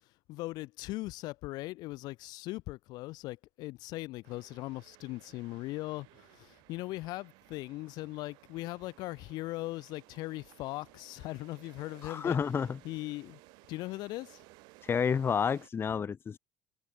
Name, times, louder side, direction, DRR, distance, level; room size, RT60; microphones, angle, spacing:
voice 1, 0.3-12.4 12.8-13.4 13.7-14.4, left 19 dB, 70° left, 0.7 m, -39 dB
sound 1, 4.2-15.7, right 25 dB, 75° right, 2.9 m, -59 dB
voice 2, 12.0-12.8 14.8-16.4, left 6 dB, 30° left, 0.6 m, -30 dB
supercardioid pair, 75°, 7 cm